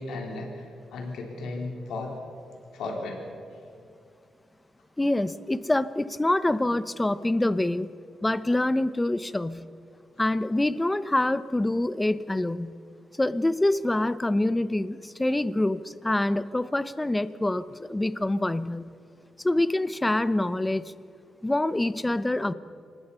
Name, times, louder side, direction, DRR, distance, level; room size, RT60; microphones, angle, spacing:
voice 1, 0.0-2.1 2.7-3.2, left 2 dB, 80° left, 1 dB, 3.8 m, -35 dB
voice 2, 5.0-7.9 8.2-9.7 10.2-12.8 13.2-19.0 19.4-20.9 21.4-22.5, left 1 dB, 15° left, 15 dB, 0.8 m, -26 dB
25.5 x 20.0 x 5.6 m, 2.4 s
cardioid pair, 90°, 0 cm